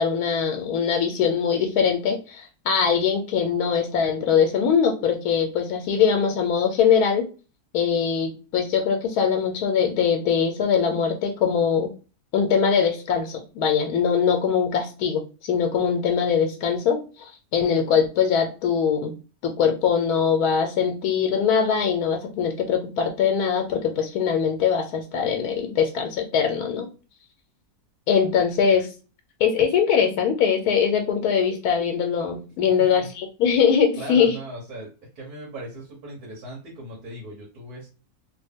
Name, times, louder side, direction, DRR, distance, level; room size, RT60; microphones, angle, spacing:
voice 1, 0.0-7.2 7.7-11.9 12.3-19.1 19.4-26.9 28.1-28.9 29.4-34.3, left 7 dB, 85° left, 4 dB, 1.1 m, -22 dB
voice 2, 32.7-33.1 34.0-34.9 35.2-37.9, right 1 dB, 80° right, -3 dB, 1.6 m, -38 dB
3.4 x 2.2 x 3.5 m, 0.34 s
omnidirectional pair, 1.6 m